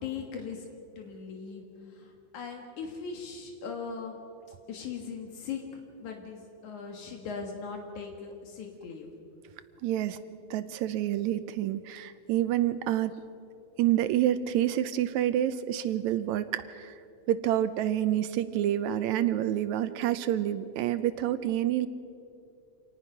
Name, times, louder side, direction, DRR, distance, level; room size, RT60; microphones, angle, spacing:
voice 1, 0.0-0.6 1.0-4.2 4.7-5.6 6.0-9.1, left 5 dB, 80° left, 2 dB, 3.1 m, -39 dB
voice 2, 9.8-10.2 10.5-13.1 13.8-16.9 17.3-21.9, right 12 dB, 80° right, 13 dB, 1.9 m, -28 dB
26.5 x 18.5 x 5.7 m, 2.5 s
omnidirectional pair, 3.4 m